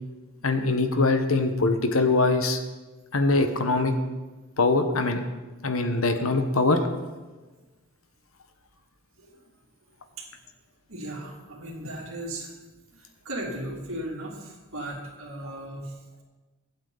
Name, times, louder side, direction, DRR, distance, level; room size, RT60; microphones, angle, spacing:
voice 1, 0.4-2.6 3.1-4.0 4.6-5.2 5.6-6.9, left 3 dB, 75° left, 7 dB, 1.3 m, -23 dB
voice 2, 10.9-12.5 12.9-16.0, right 1 dB, 70° right, -1 dB, 3.0 m, -37 dB
24.0 x 8.7 x 4.1 m, 1.2 s
head